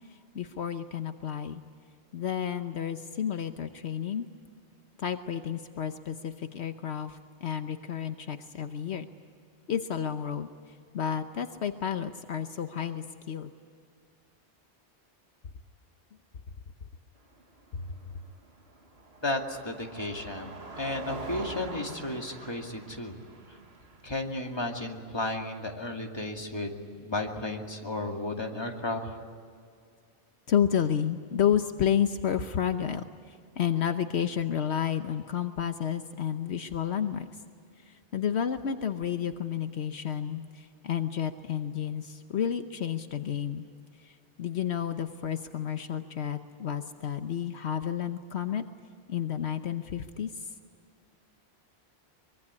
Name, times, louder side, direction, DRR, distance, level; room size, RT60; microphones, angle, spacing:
voice 1, 0.1-1.6 2.1-4.3 5.0-9.1 9.7-13.5 17.7-17.9 30.5-37.3 37.9-43.6 44.0-48.6 49.1-50.5, left 8 dB, 75° left, 8 dB, 1.2 m, -31 dB
Car passing by, 17.2-25.4, right 3 dB, 65° right, 2.1 m, -45 dB
voice 2, 19.2-23.1 24.0-29.0, left 2 dB, 20° left, 2 dB, 2.3 m, -33 dB
24.0 x 22.5 x 9.6 m, 2.2 s
omnidirectional pair, 1.1 m